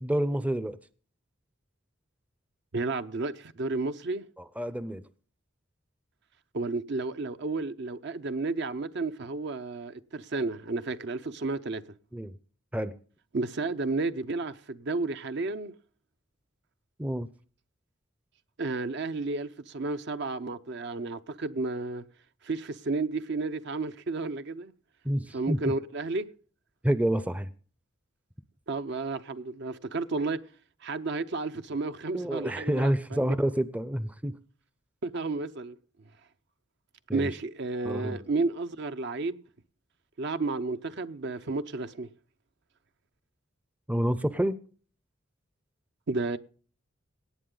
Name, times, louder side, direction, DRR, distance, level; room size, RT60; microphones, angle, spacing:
voice 1, 0.0-0.8 4.6-5.0 12.1-12.4 12.7-12.9 17.0-17.3 25.0-25.6 26.8-27.5 32.1-34.4 37.1-37.3 37.8-38.2 43.9-44.6, right 1 dB, 5° right, 0.5 m, -28 dB
voice 2, 2.7-4.3 6.5-11.8 13.3-15.7 18.6-22.0 22.4-24.7 25.3-26.3 28.7-30.4 30.8-32.9 35.0-35.8 37.1-39.4 40.2-42.1 46.1-46.4, right 3 dB, 60° right, 0.7 m, -32 dB
18.0 x 8.1 x 3.9 m
head